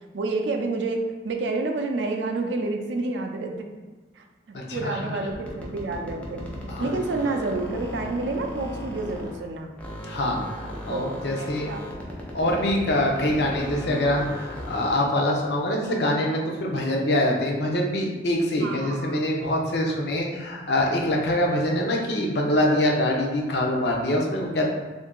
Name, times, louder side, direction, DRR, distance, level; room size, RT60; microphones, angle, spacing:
voice 1, 0.1-3.7 4.2-4.3 4.7-6.5 6.8-9.7 10.9-11.9 18.6-19.2, right 3 dB, 75° right, 4 dB, 0.4 m, -29 dB
voice 2, 4.5-5.1 6.7-6.9 10.0-11.7 12.3-24.7, left 1 dB, 65° left, 0 dB, 0.6 m, -24 dB
sound 1, 5.3-9.5 9.8-15.2, left 1 dB, 10° left, 0.4 m, -37 dB
2.7 x 2.6 x 3.6 m, 1.3 s
head